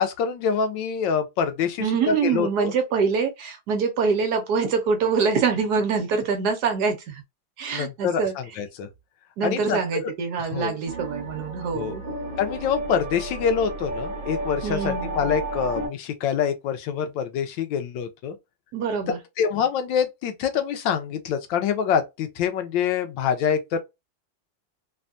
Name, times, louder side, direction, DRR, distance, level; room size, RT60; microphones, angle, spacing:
voice 1, 0.0-2.7 7.7-8.9 9.4-9.8 10.4-10.8 11.7-11.9 12.4-18.4 19.4-23.8, left 7 dB, 85° left, 1.3 m, -25 dB
voice 2, 1.8-7.2 7.6-8.3 9.4-12.0 14.6-15.1 18.7-19.2, right 5 dB, 70° right, 1.1 m, -25 dB
sound 1, 10.9-15.9, right 2 dB, 40° right, 1.0 m, -32 dB
3.4 x 2.2 x 2.5 m
omnidirectional pair, 2.0 m